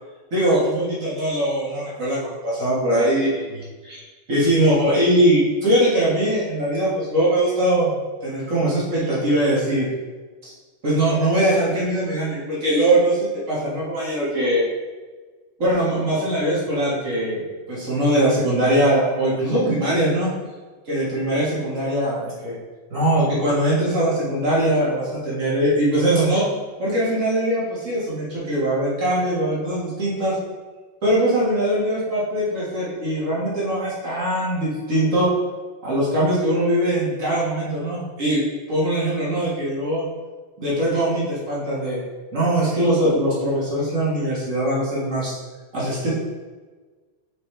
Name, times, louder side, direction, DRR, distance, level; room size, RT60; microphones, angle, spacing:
voice 1, 0.3-4.0 4.3-7.9 8.2-9.9 10.4-10.5 10.8-14.6 15.6-17.4 17.7-20.3 20.9-22.5 22.9-26.5 26.8-30.4 31.0-35.3 35.8-40.0 40.6-42.0 42.3-45.4 45.7-46.1, right 1 dB, 35° right, -8 dB, 1.4 m, -21 dB
5.5 x 5.2 x 3.3 m, 1.3 s
omnidirectional pair, 3.7 m